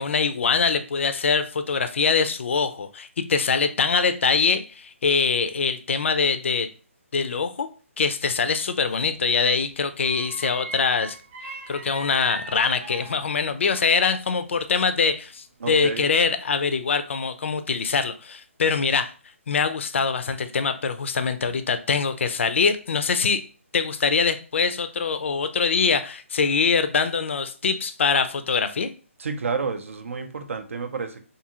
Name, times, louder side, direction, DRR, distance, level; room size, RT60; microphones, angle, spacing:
voice 1, 0.0-6.7 7.1-7.7 8.0-11.2 11.4-19.1 19.5-23.4 23.7-28.9, left 5 dB, 60° left, 10 dB, 0.3 m, -23 dB
Knarzende Tür Tor MS, 8.8-9.2 10.0-14.0 14.4-15.3 15.7-16.0, right 3 dB, 20° right, 0.5 m, -40 dB
voice 2, 15.6-16.1 29.2-31.2, right 5 dB, 70° right, 8 dB, 0.5 m, -30 dB
2.6 x 2.4 x 2.8 m, 0.38 s
hypercardioid pair, 160°, 8 cm